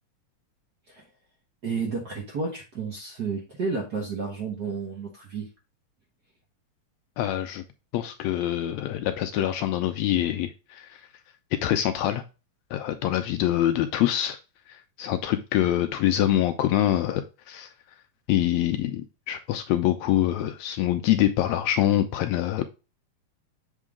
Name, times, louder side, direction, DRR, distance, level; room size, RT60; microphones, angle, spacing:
voice 1, 1.6-5.5, right 4 dB, 50° right, 0 dB, 1.3 m, -31 dB
voice 2, 7.2-7.6 7.9-11.0 11.6-12.2 12.7-14.4 14.7-17.7 18.3-22.7, left 12 dB, 80° left, 8 dB, 1.7 m, -25 dB
7.3 x 3.8 x 3.5 m, 0.30 s
omnidirectional pair, 3.5 m